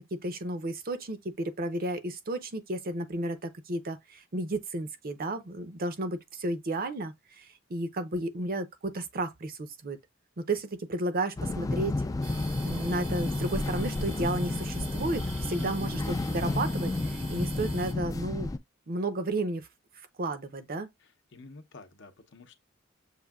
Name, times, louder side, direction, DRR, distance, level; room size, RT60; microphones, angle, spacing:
voice 1, 0.0-10.0 10.4-11.9 12.6-18.5 18.9-19.7 20.2-20.9, right 2 dB, 45° right, 0.6 m, -33 dB
sound 1, 11.4-18.6, left 2 dB, 15° left, 0.3 m, -31 dB
sound 2, 12.2-17.9, right 4 dB, 75° right, 1.4 m, -45 dB
voice 2, 21.3-22.5, left 3 dB, 65° left, 0.7 m, -50 dB
6.5 x 2.6 x 2.3 m
head